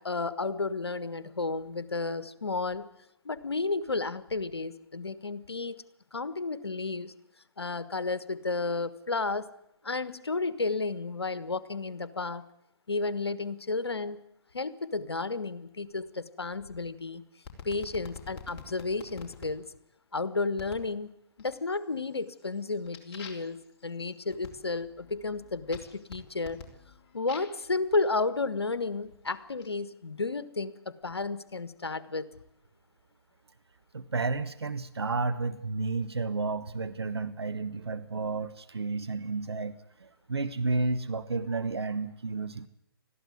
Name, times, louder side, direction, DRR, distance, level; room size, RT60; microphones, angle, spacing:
voice 1, 0.0-2.8 3.2-5.8 6.1-7.1 7.6-9.5 9.8-12.4 12.9-14.2 14.5-17.2 17.6-19.6 20.1-26.6 27.1-32.3, left 3 dB, 80° left, 14 dB, 1.4 m, -32 dB
sound 1, 17.5-19.5 20.6-20.9 21.4-21.9 22.3-27.6 28.4-29.7, left 5 dB, 30° left, 3.7 m, -48 dB
voice 2, 33.9-42.7, right 3 dB, 80° right, 11 dB, 1.0 m, -32 dB
21.0 x 14.5 x 9.4 m, 0.77 s
figure-of-eight pair, 130°, 13 cm